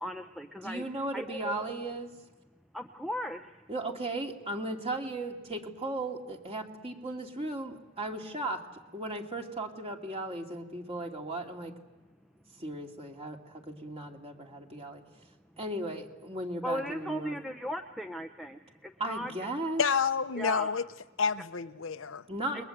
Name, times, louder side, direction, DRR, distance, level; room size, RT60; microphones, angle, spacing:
voice 1, 0.0-0.8 1.1-1.5 2.7-3.4 16.6-18.6 19.0-19.3 20.4-20.7 22.5-22.6, equal, ahead, 0.8 m, -36 dB
voice 2, 0.6-2.1 3.7-8.6 8.9-11.7 12.6-15.0 15.6-17.3 19.0-19.8 22.3-22.6, right 2 dB, 30° right, 2.7 m, -36 dB
voice 3, 19.8-20.9 21.2-22.2, left 6 dB, 75° left, 0.8 m, -29 dB
29.5 x 22.0 x 8.0 m
head